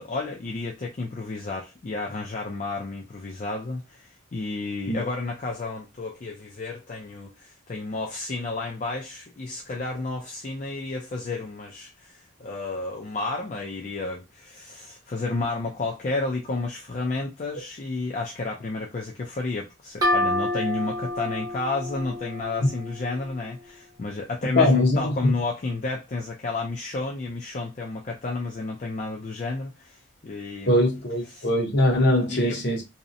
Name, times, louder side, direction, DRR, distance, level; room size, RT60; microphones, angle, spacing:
voice 1, 0.0-30.7 31.2-31.5 32.3-32.6, left 3 dB, 35° left, 0.4 m, -31 dB
sound 1, 20.0-23.6, left 1 dB, 20° right, 0.7 m, -29 dB
voice 2, 24.6-25.3 30.7-32.8, left 1 dB, 55° left, 0.8 m, -21 dB
2.7 x 2.0 x 2.5 m
head